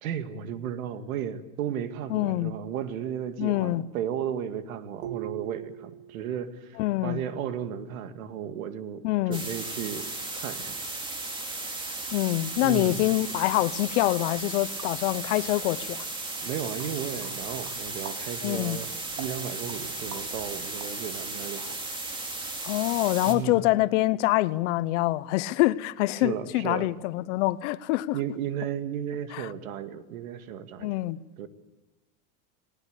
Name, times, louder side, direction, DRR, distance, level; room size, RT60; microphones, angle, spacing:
voice 1, 0.0-10.1 10.3-10.8 12.6-13.0 16.4-18.9 19.2-21.8 23.3-23.6 26.2-26.9 28.1-31.0 31.4-31.5, right 9 dB, 85° right, 2.3 m, -34 dB
voice 2, 2.1-2.5 3.4-3.8 6.8-7.2 9.0-9.4 12.1-16.1 18.4-18.8 22.6-28.2 29.3-29.5 30.8-31.2, left 18 dB, 60° left, 0.9 m, -25 dB
sound 1, 5.0-6.7, right 14 dB, 70° right, 1.5 m, -41 dB
sound 2, 9.3-23.3, right 2 dB, 10° right, 2.4 m, -35 dB
sound 3, 14.8-14.9 15.3-16.4 16.8-18.2 18.5-21.4, right 6 dB, 45° right, 3.7 m, -47 dB
19.5 x 19.5 x 8.2 m
supercardioid pair, 160°, 41 cm